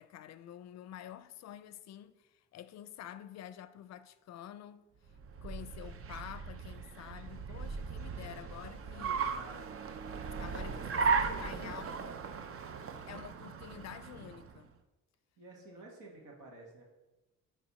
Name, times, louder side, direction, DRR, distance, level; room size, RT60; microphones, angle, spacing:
voice 1, 0.0-4.9 5.4-9.3 10.4-12.2 13.1-14.7, left 11 dB, 60° left, 0.4 m, -49 dB
Car, 5.1-14.6, right 5 dB, 50° right, 0.6 m, -37 dB
voice 2, 8.2-9.8 10.2-12.2 15.4-16.8, right 2 dB, 85° right, 1.8 m, -52 dB
9.8 x 3.4 x 4.2 m
cardioid pair, 90°, 30 cm